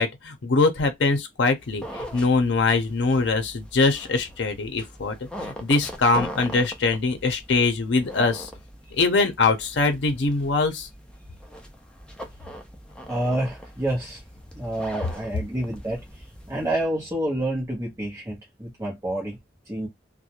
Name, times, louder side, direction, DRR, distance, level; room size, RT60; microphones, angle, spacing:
voice 1, 0.0-8.5 8.9-10.9, left 3 dB, 80° left, 0.5 m, -23 dB
sound 1, 1.6-16.8, equal, 5° left, 0.5 m, -41 dB
voice 2, 13.0-14.2 14.5-19.4 19.7-19.9, right 1 dB, 15° right, 0.8 m, -28 dB
2.4 x 2.1 x 2.7 m
head